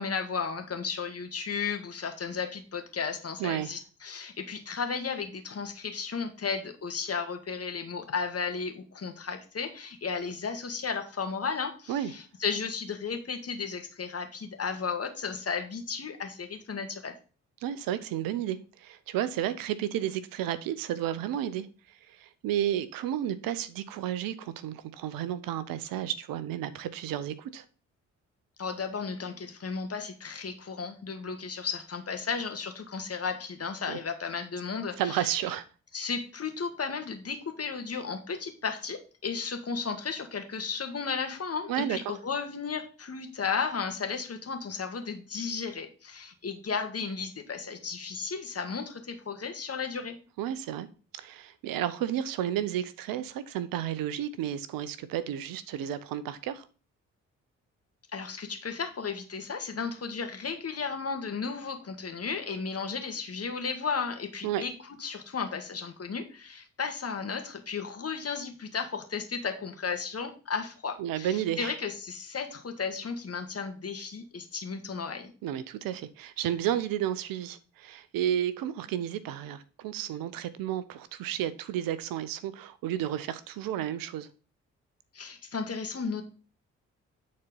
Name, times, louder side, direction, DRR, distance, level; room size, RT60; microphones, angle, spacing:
voice 1, 0.0-17.1 28.6-35.4 35.9-50.2 58.1-64.7 65.0-75.3 85.1-86.2, left 5 dB, 40° left, 2.0 m, -34 dB
voice 2, 3.4-3.7 11.9-12.1 17.6-27.6 33.9-34.0 35.0-35.7 41.7-42.0 50.4-50.9 51.1-56.7 64.4-64.6 71.0-71.7 75.4-84.3, right 11 dB, 65° right, 0.8 m, -32 dB
9.6 x 4.3 x 5.4 m
hypercardioid pair, 40°, 37 cm